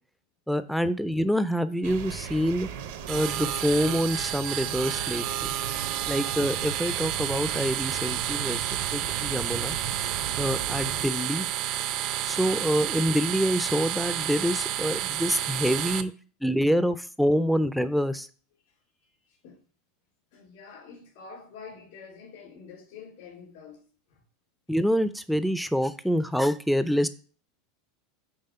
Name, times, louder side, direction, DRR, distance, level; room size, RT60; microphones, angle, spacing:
voice 1, 0.5-2.7 3.1-5.5 6.1-8.6 8.9-9.8 10.4-11.5 12.2-16.1 16.4-18.3 24.7-27.1, equal, ahead, 0.4 m, -26 dB
sound 1, 1.8-11.1, right 7 dB, 75° right, 0.8 m, -37 dB
sound 2, 3.1-16.0, right 12 dB, 55° right, 0.5 m, -30 dB
voice 2, 18.6-19.6 20.3-24.2, left 5 dB, 70° left, 2.8 m, -48 dB
5.5 x 3.4 x 5.5 m
hypercardioid pair, 105°, 0 cm